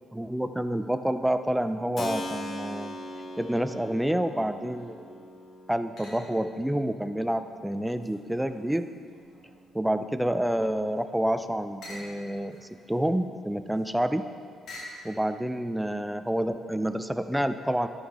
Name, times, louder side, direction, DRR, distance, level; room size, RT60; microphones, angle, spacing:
voice 1, 0.1-3.0 3.4-5.1 5.7-8.9 9.7-14.3 15.0-17.9, right 1 dB, 5° right, 10 dB, 0.4 m, -28 dB
Keyboard (musical), 2.0-10.6, left 1 dB, 45° left, 0.8 m, -42 dB
sound 1, 4.8-5.0 6.0-6.5 7.0-9.7 10.2-15.1, left 1 dB, 70° left, 1.8 m, -49 dB
12.0 x 5.6 x 3.5 m, 2.1 s
cardioid pair, 90°, 0 cm